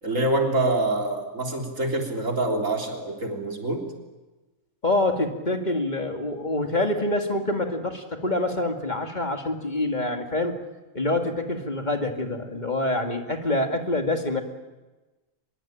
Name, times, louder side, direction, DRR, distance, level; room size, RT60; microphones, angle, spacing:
voice 1, 0.0-3.9, right 2 dB, 70° right, 1 dB, 4.0 m, -25 dB
voice 2, 4.8-10.6 10.9-14.4, left 2 dB, 35° left, 4 dB, 2.3 m, -26 dB
24.0 x 22.0 x 8.9 m, 1.1 s
omnidirectional pair, 1.4 m